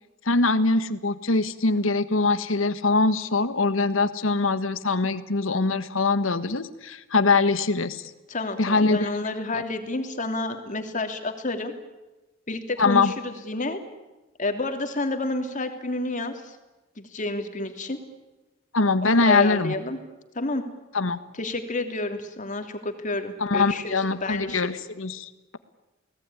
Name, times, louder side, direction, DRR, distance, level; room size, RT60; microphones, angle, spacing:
voice 1, 0.3-8.0 8.6-9.1 9.5-9.6 12.8-13.1 18.7-19.7 20.9-21.2 23.4-25.6, left 3 dB, 85° left, 12 dB, 1.5 m, -23 dB
voice 2, 8.3-11.7 12.5-13.8 14.4-16.6 17.0-18.0 19.0-20.0 20.3-20.6 21.3-24.8, left 2 dB, 40° left, 6 dB, 3.1 m, -30 dB
29.5 x 19.0 x 9.9 m, 1.1 s
head